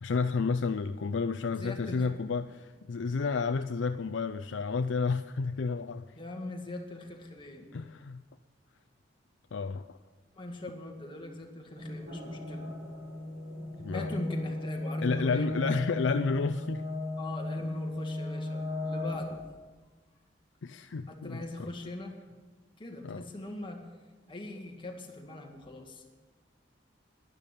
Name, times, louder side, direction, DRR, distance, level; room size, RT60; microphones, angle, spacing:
voice 1, 0.0-6.0 7.7-8.2 9.5-10.0 13.8-14.1 15.0-16.8 20.6-21.4 23.0-23.2, left 4 dB, 90° left, 9 dB, 0.5 m, -31 dB
voice 2, 1.5-2.1 6.2-7.7 10.4-12.6 13.9-15.5 17.2-19.4 21.1-22.1 22.8-23.8 24.3-26.0, left 1 dB, 30° left, 1 dB, 2.1 m, -41 dB
sound 1, 11.7-19.5, left 2 dB, 50° right, 3.5 m, -36 dB
12.0 x 11.0 x 8.5 m, 1.3 s
head